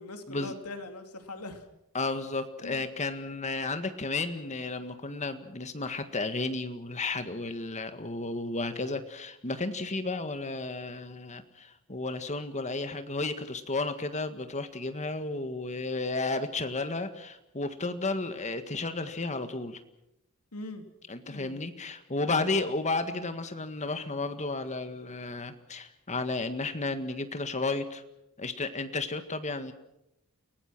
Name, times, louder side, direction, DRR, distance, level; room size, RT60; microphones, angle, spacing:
voice 1, 0.0-1.7 2.6-2.8 20.5-20.8 21.2-21.6 22.3-22.6, left 2 dB, 85° left, 6 dB, 2.9 m, -41 dB
voice 2, 1.9-19.8 21.1-28.0 28.4-29.7, left 3 dB, 30° left, 9 dB, 1.7 m, -33 dB
29.5 x 18.0 x 6.1 m, 0.86 s
head